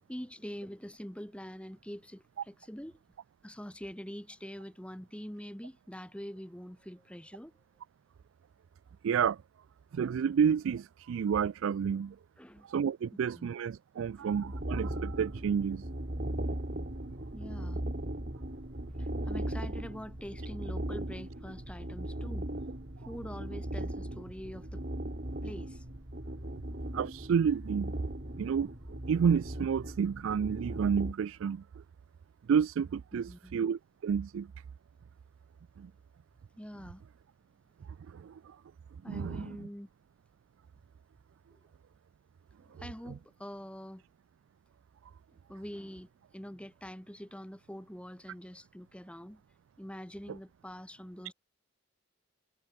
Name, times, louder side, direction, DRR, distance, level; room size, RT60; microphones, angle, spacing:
voice 1, 0.1-3.0 3.4-7.6 12.4-12.7 13.3-13.5 14.2-14.3 17.3-17.8 19.0-22.5 23.1-24.8 25.4-25.9 33.1-33.5 36.6-37.0 39.0-39.9 41.5-41.6 42.6-44.0 45.5-49.4 49.8-51.3, equal, 5° left, 1.2 m, -45 dB
voice 2, 9.0-9.4 9.9-12.2 12.6-15.8 26.9-27.9 28.4-31.6 32.5-34.5 35.8-35.9 38.1-38.6 39.1-39.7, right 7 dB, 70° right, 0.3 m, -30 dB
sound 1, 14.3-31.1, right 1 dB, 45° right, 2.0 m, -38 dB
head